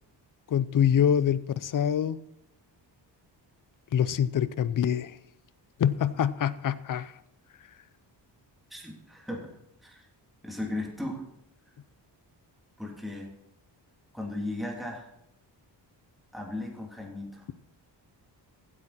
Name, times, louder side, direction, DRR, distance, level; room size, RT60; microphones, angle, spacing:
voice 1, 0.5-2.2 3.9-5.2 5.8-7.1, left 9 dB, 45° left, 0.7 m, -25 dB
voice 2, 8.7-10.1 10.4-11.2 12.8-13.3 14.1-15.1 16.3-17.5, left 1 dB, ahead, 3.1 m, -36 dB
15.5 x 8.8 x 4.3 m
wide cardioid pair, 125°, 43 cm